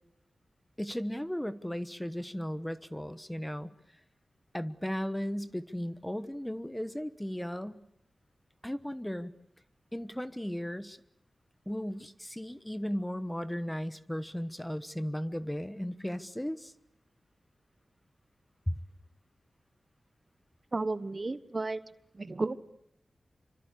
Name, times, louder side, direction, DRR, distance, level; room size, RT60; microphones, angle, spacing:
voice 1, 0.8-3.7 4.5-7.8 8.6-9.3 9.9-11.0 11.7-16.7 18.7-18.8, equal, 5° left, 13 dB, 1.2 m, -36 dB
voice 2, 20.7-21.8 22.1-22.6, right 3 dB, 40° right, 14 dB, 1.1 m, -33 dB
27.5 x 25.0 x 8.4 m, 0.73 s
wide cardioid pair, 85°, 0 cm